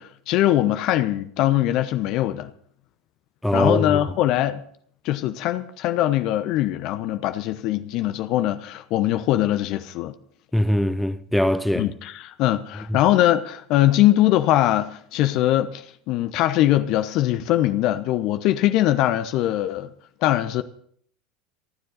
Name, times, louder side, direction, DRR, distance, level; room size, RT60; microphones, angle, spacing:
voice 1, 0.0-2.5 3.5-4.6 5.0-10.1 11.8-19.9 20.2-20.6, left 14 dB, 50° left, 0.9 m, -21 dB
voice 2, 3.4-4.0 10.5-11.9, left 1 dB, 5° left, 1.2 m, -21 dB
27.5 x 10.5 x 4.1 m
figure-of-eight pair, 75°, 0 cm